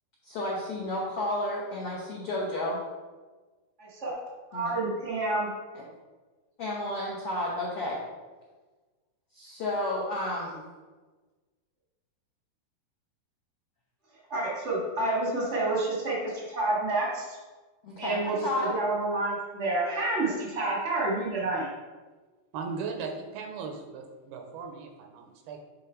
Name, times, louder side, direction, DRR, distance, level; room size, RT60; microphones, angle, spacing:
voice 1, 0.2-2.8 4.5-4.7 5.7-5.8 6.6-8.0 9.3-10.6 17.8-18.7, left 1 dB, 75° left, -5 dB, 1.3 m, -31 dB
voice 2, 3.8-4.1 4.5-5.5 14.3-17.4 18.0-21.7, right 2 dB, 45° right, -4 dB, 0.9 m, -29 dB
voice 3, 22.5-25.6, right 5 dB, 80° right, 3 dB, 2.6 m, -38 dB
9.2 x 3.8 x 4.5 m, 1.3 s
omnidirectional pair, 4.5 m